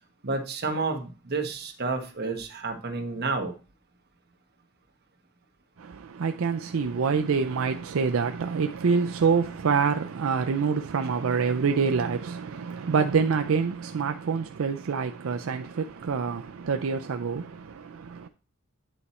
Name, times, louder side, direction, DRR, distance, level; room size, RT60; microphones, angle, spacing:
voice 1, 0.2-3.5, right 3 dB, 50° right, 1.2 m, -30 dB
voice 2, 5.8-18.3, right 5 dB, 80° right, 0.5 m, -26 dB
9.0 x 4.2 x 4.2 m
head